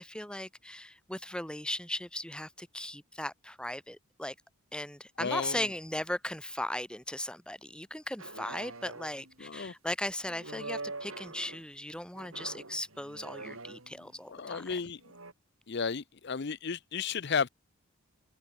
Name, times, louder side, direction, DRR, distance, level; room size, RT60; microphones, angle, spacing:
voice 1, 0.0-4.3 4.7-14.7, left 1 dB, 5° left, 3.0 m, -37 dB
voice 2, 5.2-5.7 9.4-9.7 14.3-15.0 15.7-17.5, left 5 dB, 55° left, 0.6 m, -33 dB
sound 1, 8.2-9.3 10.3-11.6 12.1-14.2 15.0-15.3, right 3 dB, 75° right, 7.4 m, -44 dB
head